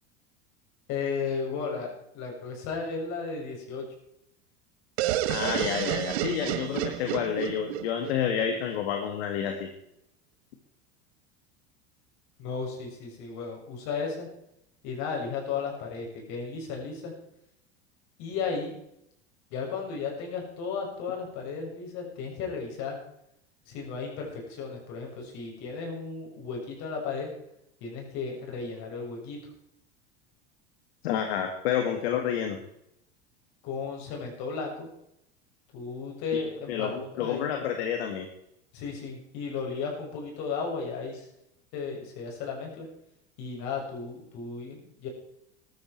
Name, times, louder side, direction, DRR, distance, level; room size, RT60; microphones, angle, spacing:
voice 1, 0.9-3.8 12.4-14.3 14.8-17.1 18.2-18.8 19.5-23.0 23.7-27.3 27.8-29.4 33.6-34.9 35.7-37.4 38.7-41.3 41.7-42.9 43.4-45.1, left 5 dB, 60° left, 0 dB, 7.0 m, -34 dB
sound 1, 5.0-8.8, right 13 dB, 75° right, 1.1 m, -30 dB
voice 2, 5.3-9.7 31.0-32.6 36.7-38.3, left 8 dB, 75° left, 4 dB, 2.1 m, -29 dB
15.0 x 13.0 x 4.5 m, 0.79 s
hypercardioid pair, 100°, 32 cm